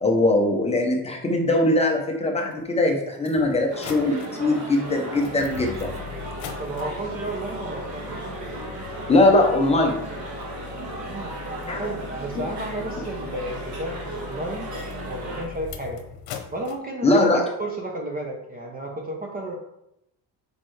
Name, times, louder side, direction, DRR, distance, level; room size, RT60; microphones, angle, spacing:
voice 1, 0.0-5.9 9.1-9.9 11.7-11.8 12.3-12.4 17.0-17.4, left 2 dB, 15° left, 1 dB, 0.7 m, -21 dB
sound 1, 2.5-2.6 3.1-16.8, left 6 dB, 70° left, 0.9 m, -40 dB
sound 2, 3.7-15.4, right 1 dB, 45° right, 1.4 m, -36 dB
voice 2, 6.6-8.2 11.1-11.4 11.7-14.7 15.0-16.0 16.5-19.6, right 1 dB, 20° right, 1 dB, 0.6 m, -32 dB
6.6 x 4.5 x 3.2 m, 0.83 s
cardioid pair, 170°, 40 cm